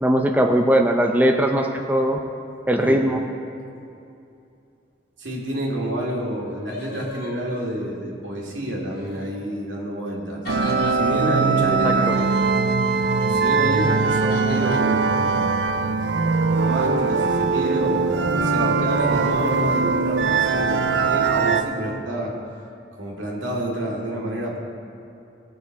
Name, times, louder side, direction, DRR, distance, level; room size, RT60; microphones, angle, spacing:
voice 1, 0.0-2.2 2.7-3.2 11.8-11.9, equal, 10° right, 2 dB, 0.6 m, -19 dB
voice 2, 5.2-10.4 10.9-12.3 13.3-15.5 16.5-22.3 23.0-24.6, right 1 dB, 90° right, -3 dB, 2.5 m, -28 dB
sound 1, 6.0-6.1 6.4-8.2 8.9-9.3 10.5-11.0 14.3-14.8, left 3 dB, 60° left, 1.3 m, -38 dB
sound 2, 10.5-21.6, right 4 dB, 70° right, 0.6 m, -21 dB
19.0 x 7.1 x 4.6 m, 2.6 s
head